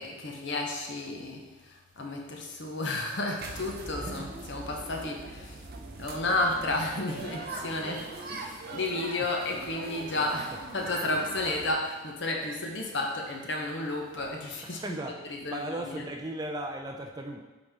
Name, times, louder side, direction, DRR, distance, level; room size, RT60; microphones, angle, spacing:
voice 1, 0.0-5.7 6.0-15.0 15.2-16.1, left 2 dB, 55° left, 1 dB, 1.0 m, -32 dB
sound 1, 3.4-11.7, right 3 dB, 45° right, 0.7 m, -41 dB
voice 2, 14.7-17.4, right 1 dB, 20° right, 3 dB, 0.4 m, -36 dB
8.0 x 4.1 x 3.6 m, 1.2 s
head